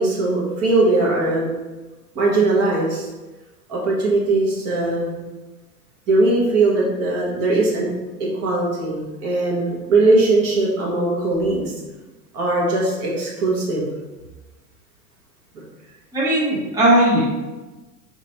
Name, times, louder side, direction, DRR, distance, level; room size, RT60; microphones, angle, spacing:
voice 1, 0.0-1.5 2.1-3.1 3.7-5.2 6.1-7.9 8.2-11.7 12.3-13.8, right 2 dB, 30° right, -5 dB, 1.3 m, -20 dB
voice 2, 16.1-17.2, right 1 dB, 5° right, -9 dB, 1.0 m, -17 dB
4.1 x 3.0 x 3.0 m, 1.2 s
figure-of-eight pair, 100°, 50 cm